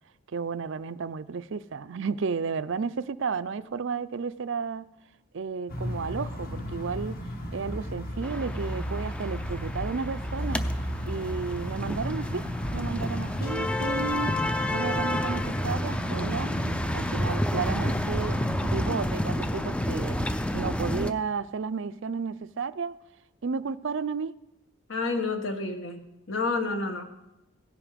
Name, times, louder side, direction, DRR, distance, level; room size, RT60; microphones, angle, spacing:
voice 1, 0.3-4.9 5.3-7.2 7.5-10.6 11.1-12.4 12.7-14.4 14.7-16.5 16.9-20.2 20.5-23.0 23.4-24.3, right 5 dB, 60° right, 15 dB, 0.5 m, -32 dB
sound 1, 5.7-18.9, equal, 45° left, 1.9 m, -34 dB
sound 2, 8.2-21.1, left 1 dB, 5° left, 0.5 m, -30 dB
voice 2, 24.9-27.0, left 3 dB, 65° left, 5 dB, 1.8 m, -30 dB
16.5 x 9.9 x 5.2 m, 0.91 s
head